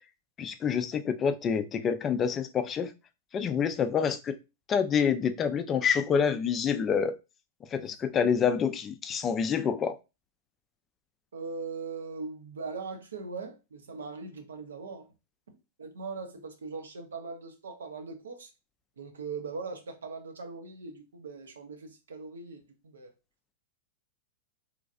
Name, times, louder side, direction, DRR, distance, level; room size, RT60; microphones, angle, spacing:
voice 1, 0.4-2.9 3.3-4.4 4.7-7.1 7.7-10.0, left 7 dB, 25° left, 0.3 m, -27 dB
voice 2, 11.3-15.1 15.8-18.5 19.0-23.1, right 4 dB, 75° right, 0.7 m, -40 dB
3.1 x 2.3 x 2.4 m
figure-of-eight pair, 100°, 0 cm